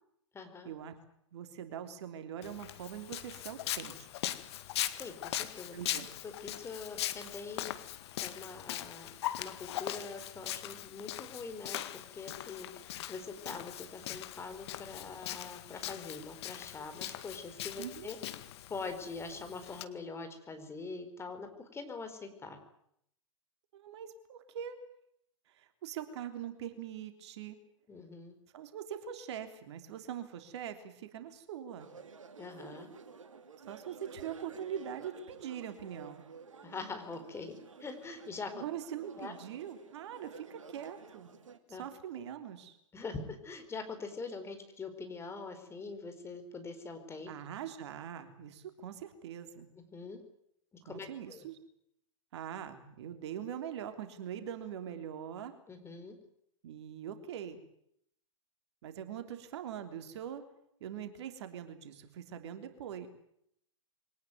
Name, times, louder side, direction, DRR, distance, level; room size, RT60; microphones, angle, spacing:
voice 1, 0.3-0.7 4.5-4.7 5.0-5.8 6.2-11.8 12.1-18.2 18.7-22.6 27.9-28.3 32.4-32.9 36.6-37.5 37.8-38.6 39.2-39.3 41.7-41.8 42.9-47.3 49.8-50.2 50.8-51.5 55.7-56.1, left 4 dB, 15° left, 7 dB, 4.5 m, -44 dB
voice 2, 1.3-4.1 5.7-6.1 17.8-18.1 23.7-24.8 25.6-27.6 28.5-31.9 33.7-36.2 38.5-41.3 41.7-42.8 47.3-49.7 50.9-51.6 52.3-55.6 56.6-57.6 58.8-60.5 60.8-63.1, right 9 dB, 60° right, 8 dB, 3.4 m, -42 dB
Walk footsteps, 2.4-19.8, left 13 dB, 55° left, 1.9 m, -41 dB
sound 1, 31.8-41.6, right 5 dB, 80° right, 2.7 m, -52 dB
23.5 x 18.5 x 9.4 m, 0.72 s
hypercardioid pair, 110°, 16 cm